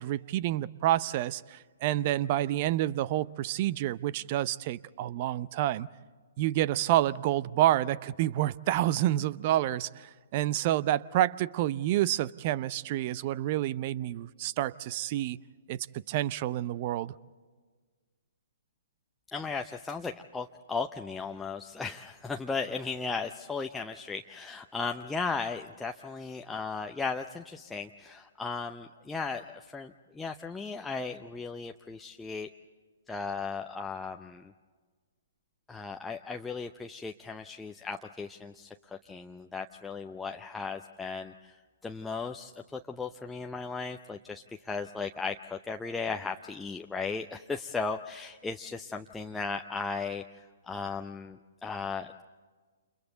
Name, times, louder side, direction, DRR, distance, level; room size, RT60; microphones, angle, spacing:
voice 1, 0.0-5.9 6.4-15.4 15.7-15.8 16.1-17.1, right 13 dB, 40° right, 20 dB, 0.6 m, -28 dB
voice 2, 19.3-32.5 33.1-34.5 35.7-41.5 41.8-52.2, left 4 dB, 5° left, 3 dB, 0.7 m, -36 dB
29.5 x 29.0 x 3.9 m, 1.5 s
figure-of-eight pair, 120°, 0 cm